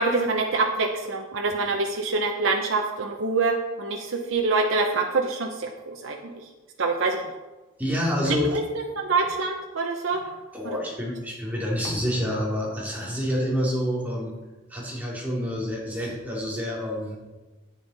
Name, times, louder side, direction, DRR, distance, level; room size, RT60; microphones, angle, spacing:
voice 1, 0.0-6.3 6.8-7.2 8.5-10.2, right 3 dB, 65° right, 2 dB, 0.8 m, -25 dB
voice 2, 7.8-8.5 10.2-14.3 14.7-17.2, equal, 10° right, -5 dB, 2.5 m, -28 dB
10.0 x 9.0 x 4.0 m, 1.2 s
head